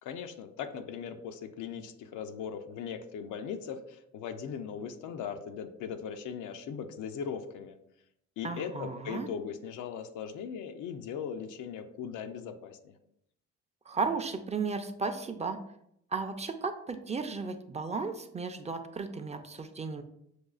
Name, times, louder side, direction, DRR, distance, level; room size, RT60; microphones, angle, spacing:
voice 1, 0.0-7.8 8.4-13.0, left 7 dB, 85° left, 8 dB, 0.5 m, -39 dB
voice 2, 8.4-9.3 13.9-15.6 16.1-20.0, right 4 dB, 25° right, 7 dB, 0.4 m, -34 dB
6.3 x 2.4 x 2.3 m, 0.75 s
cardioid pair, 90°, 30 cm